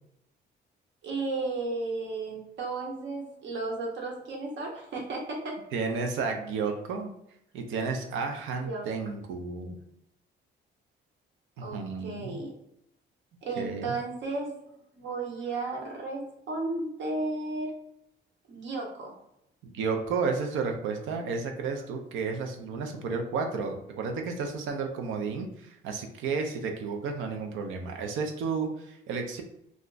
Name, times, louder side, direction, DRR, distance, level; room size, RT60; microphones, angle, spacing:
voice 1, 1.0-5.6 8.6-8.9 11.6-12.5 13.4-14.5 15.0-17.7 18.5-19.1, right 3 dB, 65° right, 0 dB, 1.0 m, -34 dB
voice 2, 5.7-7.1 7.5-9.8 11.6-12.4 13.6-14.0 19.6-29.4, right 4 dB, 90° right, 4 dB, 0.5 m, -32 dB
2.4 x 2.2 x 3.8 m, 0.77 s
cardioid pair, 90°, 20 cm